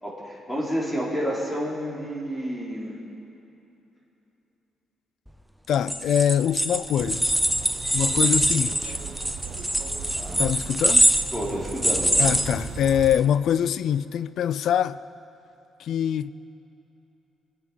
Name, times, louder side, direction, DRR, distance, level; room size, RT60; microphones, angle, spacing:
voice 1, 0.0-3.0 10.1-10.4 11.3-12.1, equal, 15° left, 3.8 m, -30 dB
voice 2, 5.7-7.3 7.9-9.0 10.4-11.1 12.2-15.0 15.8-16.3, left 9 dB, 70° left, 0.4 m, -24 dB
sound 1, 5.7-13.2, right 1 dB, ahead, 0.7 m, -24 dB
sound 2, 7.0-13.2, right 6 dB, 65° right, 1.0 m, -37 dB
22.0 x 8.3 x 5.7 m
cardioid pair, 90°, 0 cm